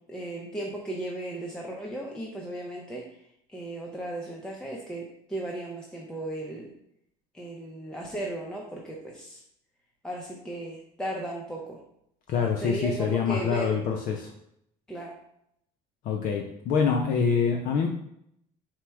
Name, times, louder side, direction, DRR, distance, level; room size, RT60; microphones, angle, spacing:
voice 1, 0.1-3.0 3.5-6.7 7.3-9.4 10.0-11.8 12.3-13.8 14.9-15.1, right 1 dB, 5° left, -3 dB, 0.5 m, -36 dB
voice 2, 12.3-14.3 16.0-17.9, left 6 dB, 55° left, 2 dB, 0.5 m, -25 dB
4.4 x 2.0 x 4.5 m, 0.75 s
cardioid pair, 130°, 17 cm